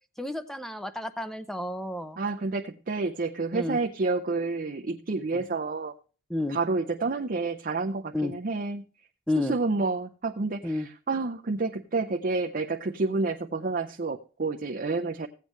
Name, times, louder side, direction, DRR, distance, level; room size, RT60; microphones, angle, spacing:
voice 1, 0.2-2.2 3.5-3.8 5.3-5.4 6.3-6.6 8.1-8.3 9.3-9.6 10.6-10.9, left 1 dB, ahead, 10 dB, 0.6 m, -31 dB
voice 2, 2.2-5.9 6.5-8.8 9.4-15.3, right 3 dB, 40° right, 3 dB, 0.6 m, -29 dB
16.0 x 8.2 x 3.1 m, 0.38 s
head